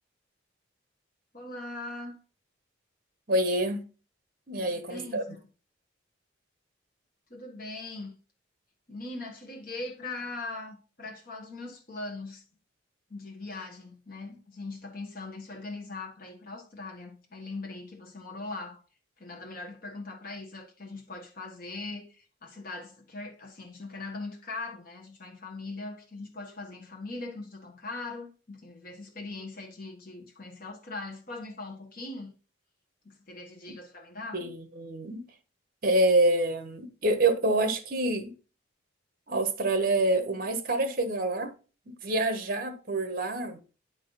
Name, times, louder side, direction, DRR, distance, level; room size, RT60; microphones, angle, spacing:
voice 1, 1.3-2.2 4.6-5.4 7.3-8.2 8.9-12.4 13.1-18.8 19.2-32.3 33.0-34.4, left 3 dB, 45° left, 1.4 m, -40 dB
voice 2, 3.3-3.8 4.5-5.2 33.7-33.8 34.3-35.2 35.8-38.3 39.3-41.5 41.9-43.6, right 2 dB, 45° right, 1.1 m, -27 dB
9.8 x 4.0 x 4.0 m
head